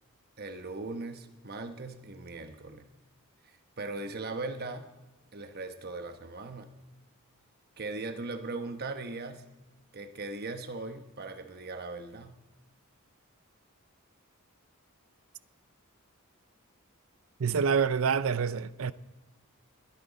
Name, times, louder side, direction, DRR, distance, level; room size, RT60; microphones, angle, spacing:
voice 1, 0.4-2.9 3.4-4.9 5.3-6.7 7.8-9.4 9.9-12.4, right 3 dB, 45° right, 1.0 m, -39 dB
voice 2, 17.4-18.9, right 6 dB, 70° right, 0.5 m, -27 dB
21.0 x 8.8 x 4.1 m
head